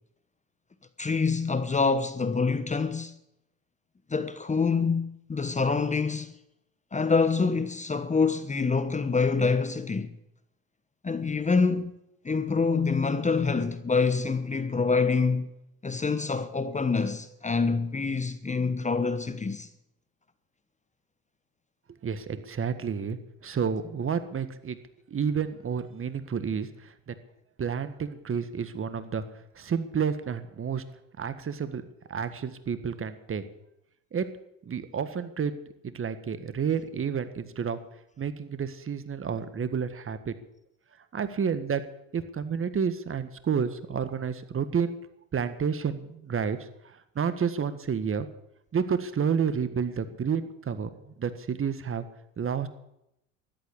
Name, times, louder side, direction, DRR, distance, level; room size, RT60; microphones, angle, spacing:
voice 1, 1.0-3.1 4.1-6.4 6.9-10.2 11.0-12.0 12.2-15.5 15.8-19.7, left 4 dB, 20° left, 1.1 m, -26 dB
voice 2, 22.0-24.8 25.1-27.1 27.6-29.2 29.5-30.8 31.2-31.8 32.1-33.4 34.1-34.3 34.6-35.5 35.8-37.8 38.2-40.3 41.1-41.8 42.1-45.0 45.3-46.6 46.8-48.3 48.7-50.9 51.2-52.0 52.4-52.7, right 6 dB, 30° right, 1.6 m, -30 dB
13.5 x 11.5 x 8.6 m
hypercardioid pair, 75°, 40 cm